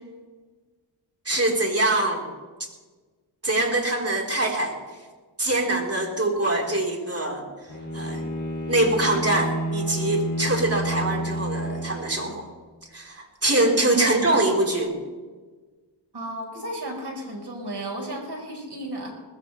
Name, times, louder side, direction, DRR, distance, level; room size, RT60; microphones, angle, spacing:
voice 1, 1.2-2.3 3.4-4.8 5.4-7.5 7.9-8.2 8.7-12.4 12.9-14.9, right 2 dB, 30° right, 0 dB, 4.4 m, -23 dB
Bowed string instrument, 7.7-12.5, right 1 dB, 40° left, 3.1 m, -30 dB
voice 2, 14.0-14.4 16.1-19.1, right 1 dB, 55° right, 0 dB, 4.9 m, -34 dB
20.0 x 16.0 x 3.4 m, 1.4 s
cardioid pair, 55°, 47 cm